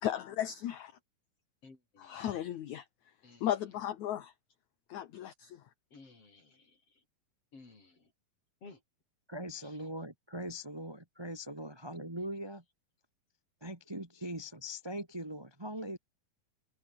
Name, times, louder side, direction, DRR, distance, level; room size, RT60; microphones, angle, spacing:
voice 1, 0.0-0.9 2.0-2.8 3.4-4.3 4.9-5.6, left 11 dB, 60° left, 2.4 m, -35 dB
voice 2, 1.6-2.2 3.2-3.5 5.9-6.6 7.5-7.9 8.6-8.8, left 3 dB, 40° left, 6.6 m, -55 dB
voice 3, 9.3-12.6 13.6-16.0, equal, 10° right, 1.2 m, -41 dB
omnidirectional pair, 4.3 m